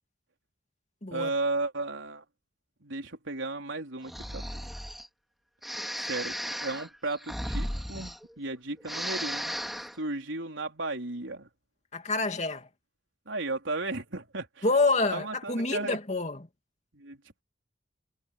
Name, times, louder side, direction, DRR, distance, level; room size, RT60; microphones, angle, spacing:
voice 1, 1.1-2.2 2.8-4.6 6.1-9.6 9.9-11.5 13.3-14.7 15.1-16.0 16.9-17.4, right 2 dB, 85° right, 4.0 m, -35 dB
Breathing, 4.0-5.1 5.6-8.5 8.8-10.0, equal, ahead, 2.7 m, -35 dB
voice 2, 11.9-12.7 14.6-16.5, left 3 dB, 35° left, 2.6 m, -27 dB
head